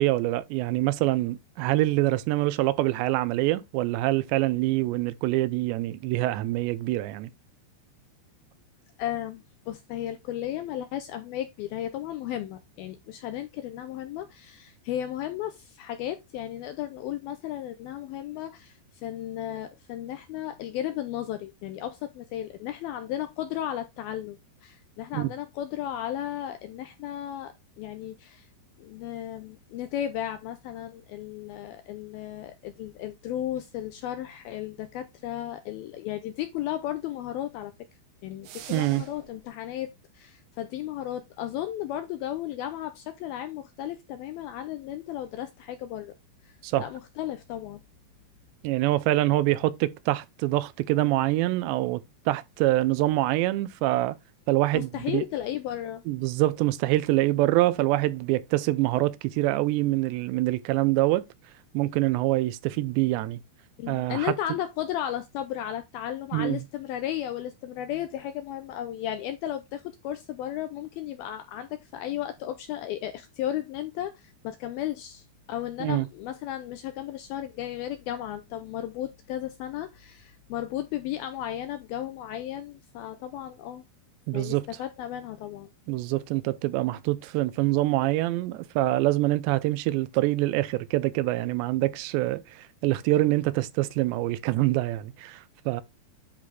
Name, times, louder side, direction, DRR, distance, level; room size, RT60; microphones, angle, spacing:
voice 1, 0.0-7.3 25.1-25.3 38.7-39.0 46.6-46.9 48.6-54.2 54.5-55.2 56.1-61.2 61.7-63.4 63.9-64.3 66.3-66.6 75.8-76.1 84.3-84.6 85.9-95.8, right 17 dB, 90° right, 2.9 m, -25 dB
voice 2, 9.0-28.5 28.8-37.7 38.2-46.2 46.4-47.8 54.7-56.0 63.8-83.8 84.3-85.7, left 12 dB, 85° left, 2.1 m, -34 dB
sound 1, 38.4-39.4, right 10 dB, 70° right, 3.0 m, -45 dB
10.5 x 4.1 x 3.3 m
omnidirectional pair, 5.0 m